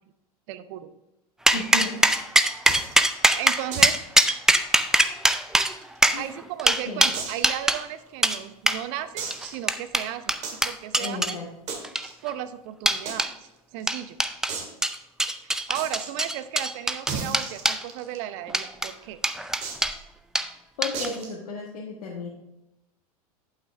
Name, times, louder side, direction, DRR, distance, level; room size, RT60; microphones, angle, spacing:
voice 1, 0.5-0.9 3.4-4.0 6.1-10.4 10.6-11.4 12.2-14.2 15.4-19.2, right 12 dB, 55° right, 12 dB, 0.7 m, -35 dB
voice 2, 1.5-2.3 6.1-6.3 6.9-7.0 11.0-11.5 20.8-22.3, left 3 dB, 80° left, -3 dB, 1.4 m, -34 dB
sound 1, 1.5-7.8 8.2-8.4 8.7-8.8 9.3-11.3 11.8-12.3 12.9-13.3 13.9-14.5 14.8-17.8 18.5-18.9 19.2-20.0 20.3-20.5 20.8-21.1, right 1 dB, 5° right, 0.4 m, -22 dB
sound 2, 2.7-2.9 3.7-4.0 4.3-4.4 4.7-4.8 5.5-6.3 7.1-7.5 8.1-8.2 9.2-9.7 10.4-10.6 11.7-12.1 13.1-13.2 13.4-13.5 13.8-13.9 14.5-14.7 15.7-16.1 17.1-18.2 19.6-19.9 20.9-21.3, right 5 dB, 35° right, 2.0 m, -34 dB
11.0 x 5.8 x 3.5 m, 0.93 s
hypercardioid pair, 100°, 20 cm